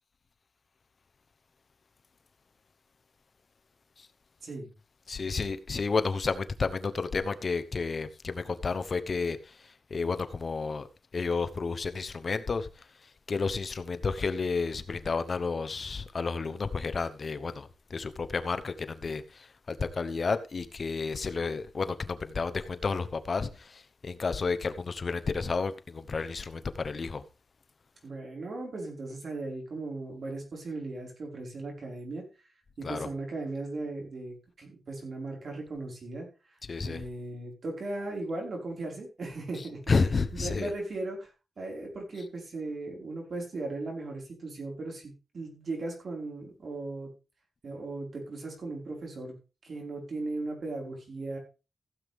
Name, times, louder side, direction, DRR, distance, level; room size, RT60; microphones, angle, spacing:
voice 1, 5.1-27.2 32.8-33.1 36.6-37.1 39.6-40.7, left 4 dB, 45° left, 0.9 m, -31 dB
voice 2, 28.0-32.3 32.8-36.3 36.8-39.8 40.3-41.3 41.6-47.1 47.6-49.4 49.6-51.4, right 2 dB, 55° right, 5.2 m, -37 dB
15.5 x 8.0 x 3.6 m
wide cardioid pair, 120°, 0 cm